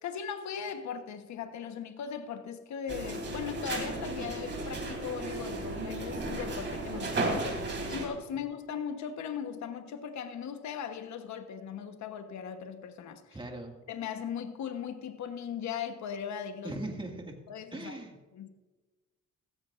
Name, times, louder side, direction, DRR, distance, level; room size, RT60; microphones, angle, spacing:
voice 1, 0.0-13.4 13.9-16.8 17.5-18.0 18.3-18.5, left 7 dB, 70° left, 8 dB, 1.1 m, -38 dB
sound 1, 2.9-8.1, right 2 dB, 35° right, 3.2 m, -34 dB
voice 2, 13.3-13.8 16.6-17.4 17.7-18.2, right 2 dB, 15° right, 2 dB, 1.9 m, -39 dB
15.5 x 14.0 x 2.5 m, 1.2 s
cardioid pair, 90°, 30 cm